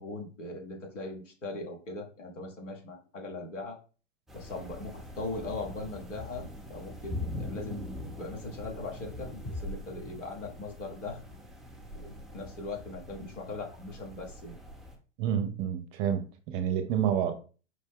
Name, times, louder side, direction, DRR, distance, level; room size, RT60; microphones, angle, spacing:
voice 1, 0.0-3.8 4.3-11.2 12.0-14.5, left 2 dB, 80° left, 1.6 m, -40 dB
sound 1, 4.3-15.0, left 1 dB, ahead, 0.6 m, -43 dB
sound 2, 9.4-11.2, left 1 dB, 15° left, 1.0 m, -42 dB
voice 2, 15.2-17.3, right 9 dB, 35° right, 0.6 m, -29 dB
5.2 x 2.1 x 3.6 m
hypercardioid pair, 110°, 36 cm